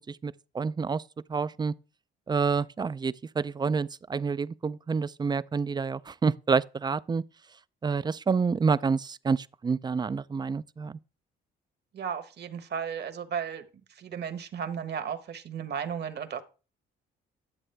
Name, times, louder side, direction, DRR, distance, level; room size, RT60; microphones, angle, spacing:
voice 1, 0.1-1.0 1.3-1.7 2.3-7.2 7.8-11.0, right 5 dB, 20° right, 0.3 m, -28 dB
voice 2, 11.9-13.6 13.9-16.4, right 7 dB, 55° right, 1.2 m, -34 dB
11.0 x 7.4 x 3.3 m
cardioid pair, 90°, 20 cm